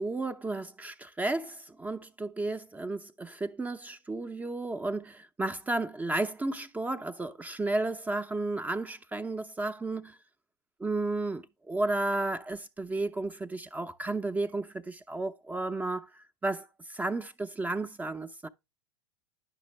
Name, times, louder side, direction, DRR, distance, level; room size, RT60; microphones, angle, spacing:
voice 1, 0.0-10.2 10.8-18.5, right 2 dB, 10° right, 0.5 m, -33 dB
10.5 x 5.7 x 3.1 m
figure-of-eight pair, 90°, 14 cm